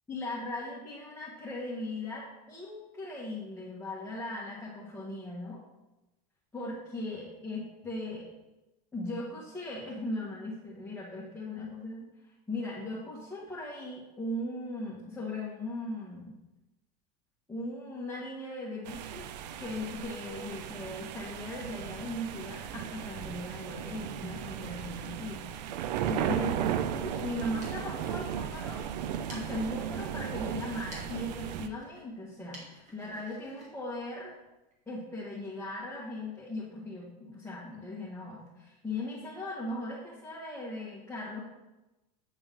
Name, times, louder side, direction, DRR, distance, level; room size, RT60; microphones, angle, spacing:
voice 1, 0.1-5.6 6.5-8.2 8.9-12.1 12.5-16.4 17.5-19.3 19.6-25.5 26.1-34.3 34.9-41.4, left 1 dB, 10° left, -8 dB, 1.6 m, -38 dB
sound 1, 18.9-31.7, right 9 dB, 85° right, 0.4 m, -36 dB
sound 2, 30.7-34.8, right 1 dB, 35° right, 2.0 m, -54 dB
8.8 x 3.4 x 3.6 m, 1.0 s
supercardioid pair, 105°, 21 cm